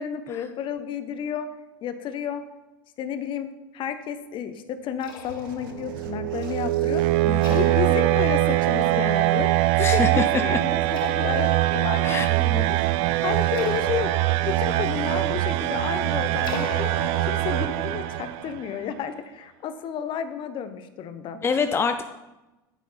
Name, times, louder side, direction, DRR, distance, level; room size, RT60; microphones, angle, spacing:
voice 1, 0.0-1.5 1.8-2.4 3.0-3.5 3.7-7.1 7.5-9.5 9.8-12.8 13.2-14.1 14.4-16.9 17.2-21.4, left 8 dB, 50° left, 10 dB, 0.9 m, -31 dB
sound 1, 4.7-17.7, right 6 dB, 80° right, 1.0 m, -44 dB
sound 2, 5.0-18.4, left 4 dB, 90° left, 1.4 m, -41 dB
sound 3, 5.7-18.6, right 17 dB, 60° right, 0.4 m, -23 dB
voice 2, 7.2-7.7 9.8-10.2 10.5-10.6 11.0-11.1 12.0-12.3 21.4-22.0, left 5 dB, 20° left, 7 dB, 0.5 m, -25 dB
9.2 x 7.3 x 4.1 m, 1.0 s
hypercardioid pair, 95°, 11 cm